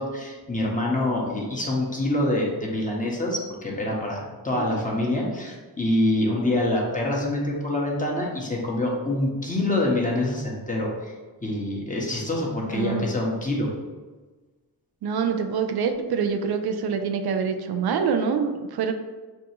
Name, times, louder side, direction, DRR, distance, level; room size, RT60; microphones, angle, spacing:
voice 1, 0.0-11.1 11.4-13.7, left 1 dB, 20° left, -3 dB, 1.3 m, -26 dB
voice 2, 12.6-13.1 15.0-18.9, right 6 dB, 75° right, 6 dB, 0.5 m, -26 dB
6.1 x 2.3 x 2.9 m, 1.3 s
cardioid pair, 55°, 38 cm